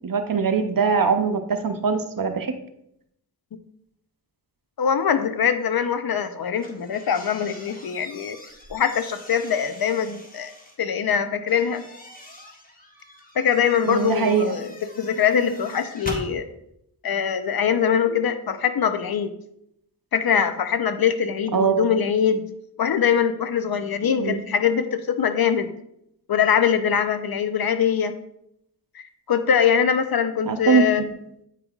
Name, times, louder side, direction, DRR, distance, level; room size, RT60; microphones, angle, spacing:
voice 1, 0.0-2.5 13.8-14.6 21.5-21.9 24.2-24.4 30.5-31.1, right 5 dB, 55° right, 7 dB, 0.7 m, -22 dB
voice 2, 4.8-8.4 8.7-10.5 10.8-11.8 13.4-16.4 17.0-19.3 20.1-22.4 22.8-25.7 26.3-28.1 28.9-31.0, left 7 dB, 65° left, 10 dB, 0.6 m, -22 dB
sound 1, 6.5-10.8 11.5-16.3, left 1 dB, 20° left, 1.2 m, -42 dB
8.3 x 5.3 x 2.3 m, 0.76 s
cardioid pair, 55°, 40 cm